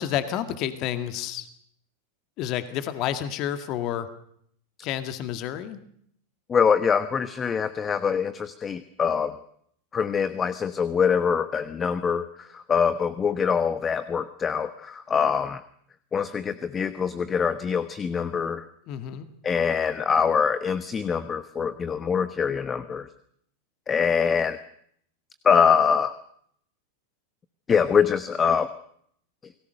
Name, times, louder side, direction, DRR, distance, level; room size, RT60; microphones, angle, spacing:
voice 1, 0.0-1.5 2.4-4.1 4.8-5.8 18.9-19.3, left 10 dB, 45° left, 10 dB, 2.0 m, -30 dB
voice 2, 6.5-9.4 9.9-15.6 16.1-18.6 19.4-23.1 23.9-24.6 25.4-26.1 27.7-28.7, left 6 dB, 25° left, 13 dB, 1.1 m, -24 dB
28.0 x 19.0 x 6.7 m, 0.68 s
figure-of-eight pair, 90°, 0 cm